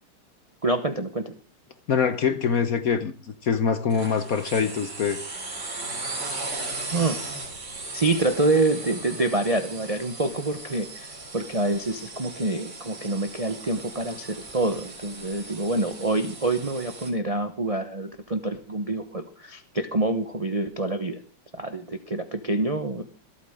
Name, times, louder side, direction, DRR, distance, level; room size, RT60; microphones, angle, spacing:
voice 1, 0.6-1.3 6.9-7.2 7.9-21.2 21.5-23.0, right 2 dB, 35° right, 7 dB, 0.5 m, -26 dB
voice 2, 1.9-3.1 3.4-5.2, left 6 dB, 55° left, 11 dB, 1.1 m, -24 dB
sound 1, 3.9-17.1, right 2 dB, 55° right, 4.3 m, -37 dB
26.0 x 8.8 x 3.7 m, 0.34 s
omnidirectional pair, 2.3 m